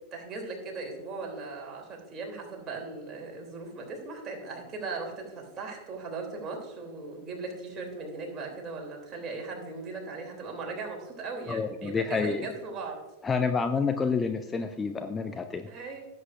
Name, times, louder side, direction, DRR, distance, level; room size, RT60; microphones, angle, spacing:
voice 1, 0.1-13.0 15.7-16.0, right 3 dB, 25° right, 1 dB, 2.9 m, -38 dB
voice 2, 11.5-12.5 13.2-15.7, left 5 dB, 15° left, 8 dB, 0.5 m, -28 dB
16.5 x 7.9 x 2.5 m, 1.0 s
figure-of-eight pair, 90°, 0 cm